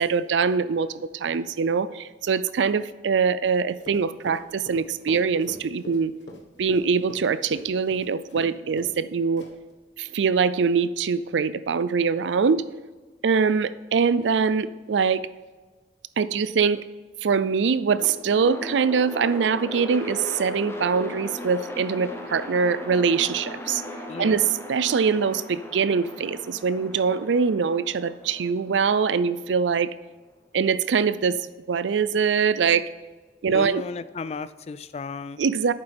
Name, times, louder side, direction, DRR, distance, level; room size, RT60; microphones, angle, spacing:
voice 1, 0.0-6.1 6.6-9.5 10.0-12.7 13.2-15.3 16.2-16.9 17.2-23.8 24.2-29.9 30.5-31.4 31.7-32.9 33.4-33.8 35.4-35.7, right 5 dB, 85° right, 16 dB, 0.4 m, -23 dB
Run, 3.8-8.5 8.8-9.0 9.4-9.7, left 1 dB, 90° left, 1.5 m, -41 dB
sound 1, 17.9-30.1, left 1 dB, 15° left, 0.8 m, -38 dB
voice 2, 24.1-24.5 33.5-35.4, left 4 dB, 35° left, 15 dB, 0.3 m, -34 dB
10.5 x 8.8 x 3.5 m, 1.3 s
head